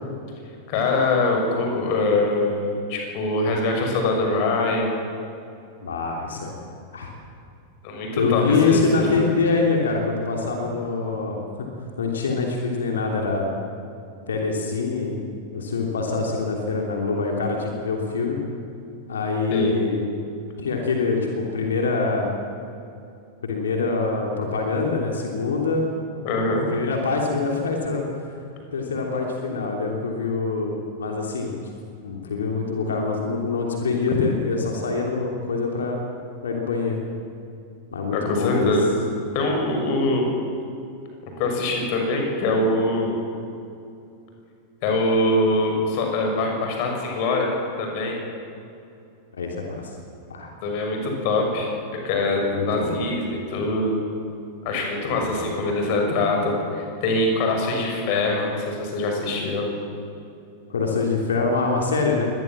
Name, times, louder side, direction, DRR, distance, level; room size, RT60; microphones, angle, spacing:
voice 1, 0.7-5.0 7.8-9.3 19.5-19.7 26.2-26.6 34.1-34.2 38.1-38.9 39.3-40.3 41.4-43.2 44.8-47.5 47.8-48.2 50.6-51.7 52.0-54.0 54.6-59.7, left 2 dB, 45° left, 1 dB, 6.4 m, -23 dB
voice 2, 5.8-6.5 6.9-7.1 8.1-11.7 12.0-13.5 14.3-15.2 15.5-18.4 19.1-20.0 20.6-22.3 23.4-25.9 26.7-28.1 28.7-31.5 32.0-36.0 36.4-37.0 37.9-38.7 49.3-49.9 50.3-50.5 52.5-53.0 55.1-55.5 60.7-62.3, left 4 dB, 65° left, 1 dB, 3.1 m, -25 dB
23.5 x 19.5 x 7.5 m, 2.6 s
figure-of-eight pair, 90°, 0 cm